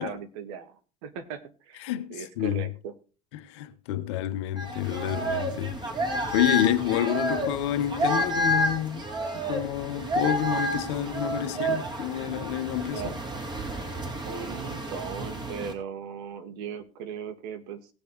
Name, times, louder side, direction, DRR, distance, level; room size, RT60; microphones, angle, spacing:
voice 1, 0.0-1.8 2.1-2.9 12.9-13.1 14.2-17.9, right 7 dB, 85° right, 1.7 m, -38 dB
voice 2, 1.8-2.7 3.3-5.8 6.3-9.1 9.3-13.2, left 12 dB, 90° left, 1.1 m, -28 dB
sound 1, 4.6-15.7, right 1 dB, 30° right, 3.2 m, -30 dB
19.5 x 6.9 x 3.1 m
supercardioid pair, 90°, 14 cm